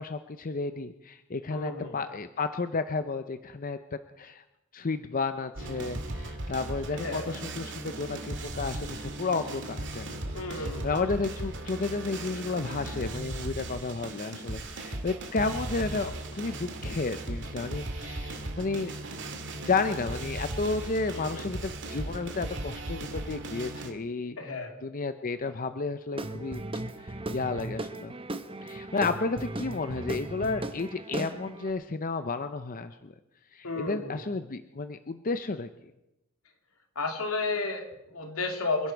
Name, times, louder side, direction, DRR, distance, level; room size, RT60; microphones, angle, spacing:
voice 1, 0.0-3.8 4.2-4.4 4.7-10.2 10.5-18.9 19.5-24.4 24.8-26.6 27.0-28.1 28.6-33.1 33.5-35.7, left 3 dB, 40° left, 10 dB, 0.6 m, -32 dB
voice 2, 1.5-2.0 6.9-7.3 10.3-10.9 21.1-21.5 24.4-24.8 33.6-34.2 37.0-38.9, left 3 dB, 85° left, 3 dB, 2.6 m, -33 dB
sound 1, 5.6-23.9, right 1 dB, 60° right, 2.0 m, -37 dB
Guitar / Drum, 26.1-31.7, right 2 dB, 25° right, 0.9 m, -37 dB
26.0 x 11.0 x 4.6 m, 0.89 s
head